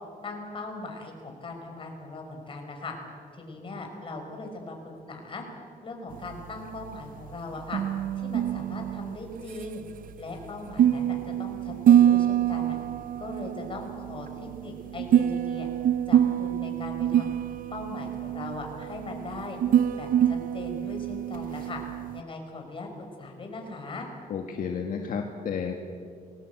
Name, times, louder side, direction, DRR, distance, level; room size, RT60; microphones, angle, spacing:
voice 1, 0.2-2.9 3.3-5.5 5.8-7.8 8.2-9.8 10.2-12.8 13.2-15.7 16.1-17.3 17.7-19.6 20.0-21.8 22.1-22.9 23.2-24.1, left 3 dB, 35° left, 2 dB, 5.3 m, -39 dB
sound 1, 6.1-22.2, right 10 dB, 65° right, 0.6 m, -26 dB
voice 2, 24.3-25.7, left 6 dB, 65° left, 3 dB, 1.8 m, -31 dB
29.0 x 20.5 x 7.9 m, 2.3 s
wide cardioid pair, 160°, 15 cm